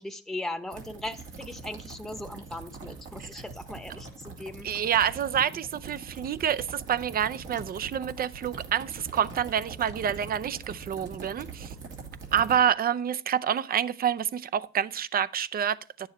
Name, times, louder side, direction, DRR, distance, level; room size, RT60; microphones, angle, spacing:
voice 1, 0.0-4.7 5.0-5.2, left 1 dB, ahead, 0.9 m, -38 dB
sound 1, 0.7-12.5, right 4 dB, 75° right, 2.6 m, -43 dB
voice 2, 4.6-11.7 12.3-16.1, right 9 dB, 50° right, 0.5 m, -28 dB
9.9 x 7.0 x 4.2 m
cardioid pair, 90°, 20 cm